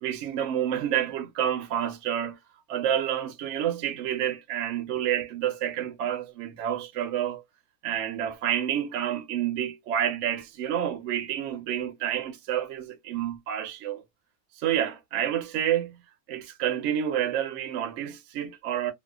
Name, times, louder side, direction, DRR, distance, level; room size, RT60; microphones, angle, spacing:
voice 1, 0.0-2.4 2.7-7.4 7.8-14.0 14.6-16.0 16.3-18.9, right 10 dB, 65° right, 0.8 m, -29 dB
2.6 x 2.1 x 2.2 m
omnidirectional pair, 1.6 m